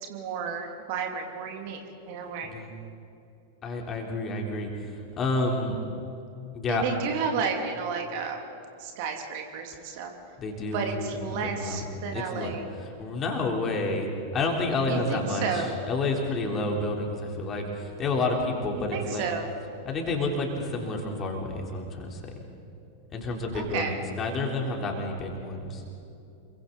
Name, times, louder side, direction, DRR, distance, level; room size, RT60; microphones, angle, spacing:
voice 1, 0.1-1.8 2.1-2.5 6.7-8.4 8.8-10.1 10.7-12.6 14.9-15.8 18.8-19.5 23.5-23.9, right 5 dB, 50° right, 3 dB, 2.6 m, -32 dB
voice 2, 3.6-5.8 6.5-6.8 10.4-10.8 11.1-11.8 12.1-19.3 19.9-22.2 23.1-25.8, left 2 dB, 25° left, 1 dB, 3.7 m, -30 dB
28.0 x 23.5 x 4.1 m, 2.7 s
figure-of-eight pair, 90°, 0 cm